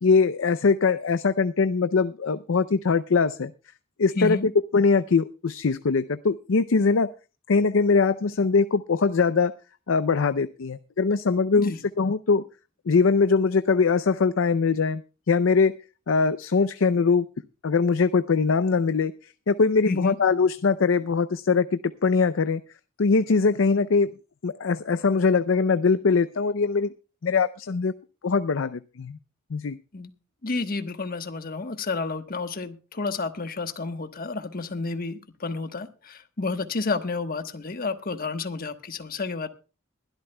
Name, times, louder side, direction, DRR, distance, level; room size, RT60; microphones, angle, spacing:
voice 1, 0.0-3.5 4.0-7.1 7.5-9.5 9.9-12.4 12.9-15.0 15.3-15.7 16.1-17.3 17.6-19.1 19.5-22.6 23.0-24.1 24.4-26.9 27.2-27.9 28.2-29.2 29.5-29.8, left 4 dB, 70° left, 13 dB, 0.5 m, -22 dB
voice 2, 4.1-4.5 11.5-11.8 19.8-20.1 29.9-30.1 30.4-39.5, left 3 dB, 45° left, 8 dB, 1.2 m, -30 dB
22.0 x 12.5 x 2.2 m, 0.33 s
head